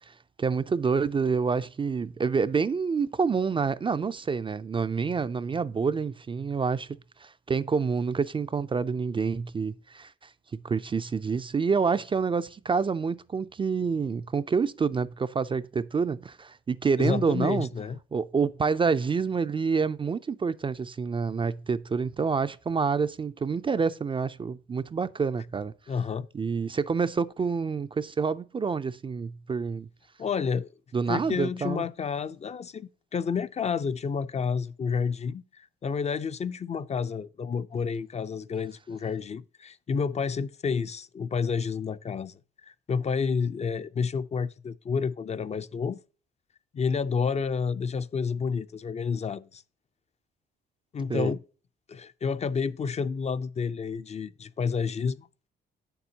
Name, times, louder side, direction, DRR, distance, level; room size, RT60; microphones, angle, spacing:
voice 1, 0.1-6.9 7.2-10.1 10.5-17.7 18.1-25.7 26.3-29.9 30.9-31.8 51.1-51.3, right 5 dB, 25° right, 0.4 m, -27 dB
voice 2, 17.0-18.0 25.9-26.3 30.2-30.7 31.1-46.0 46.7-49.6 50.9-51.4 51.9-55.3, left 5 dB, 35° left, 0.4 m, -30 dB
8.7 x 6.9 x 2.8 m
cardioid pair, 90°, 20 cm